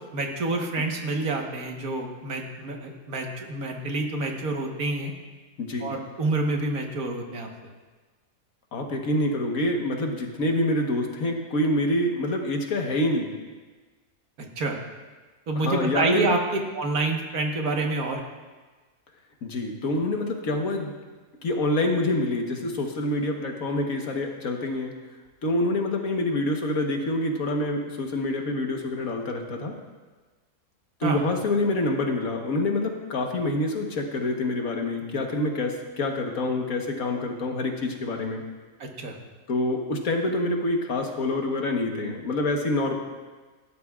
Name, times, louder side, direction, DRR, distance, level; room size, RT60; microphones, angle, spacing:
voice 1, 0.1-5.1 5.8-7.5 14.6-14.8 15.5-16.4 16.7-18.2 31.0-31.2 38.8-39.2, right 2 dB, 90° right, 2 dB, 1.8 m, -27 dB
voice 2, 5.6-5.9 8.7-13.3 15.5-16.3 19.4-20.9 21.4-24.9 25.4-29.7 31.0-38.4 39.5-42.9, left 1 dB, 75° left, 2 dB, 1.7 m, -26 dB
17.0 x 12.0 x 2.4 m, 1.3 s
omnidirectional pair, 1.5 m